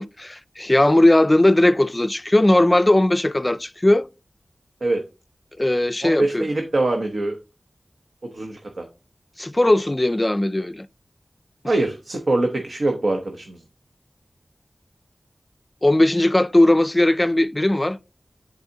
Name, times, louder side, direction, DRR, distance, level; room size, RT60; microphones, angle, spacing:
voice 1, 0.0-4.1 5.6-6.5 9.4-10.9 15.8-18.0, left 1 dB, 25° left, 0.3 m, -18 dB
voice 2, 6.0-7.4 8.2-8.9 11.7-13.6, right 2 dB, 80° right, 0.9 m, -23 dB
10.5 x 4.0 x 2.8 m
wide cardioid pair, 75°, 0 cm